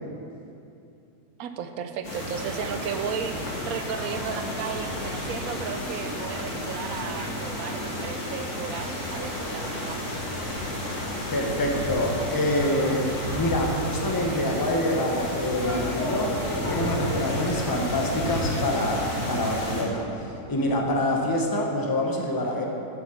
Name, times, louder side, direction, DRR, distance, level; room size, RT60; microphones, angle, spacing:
voice 1, 1.4-10.0, right 7 dB, 70° right, 8 dB, 1.0 m, -34 dB
sound 1, 2.0-19.8, left 1 dB, 50° left, 1.8 m, -31 dB
voice 2, 11.3-22.7, left 1 dB, 20° left, 1 dB, 0.7 m, -26 dB
8.0 x 7.2 x 6.2 m, 2.7 s
omnidirectional pair, 1.7 m